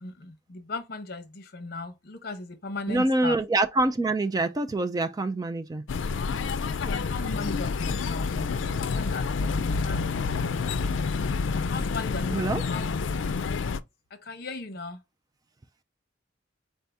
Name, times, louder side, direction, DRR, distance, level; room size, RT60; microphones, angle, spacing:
voice 1, 0.0-3.4 6.7-10.3 11.7-12.8 13.1-13.4 14.1-15.0, left 3 dB, 55° left, 0.9 m, -37 dB
voice 2, 2.9-5.8 12.3-12.6, right 2 dB, 20° right, 0.3 m, -25 dB
sound 1, 5.9-13.8, left 4 dB, 85° left, 0.4 m, -28 dB
4.3 x 2.7 x 3.4 m
head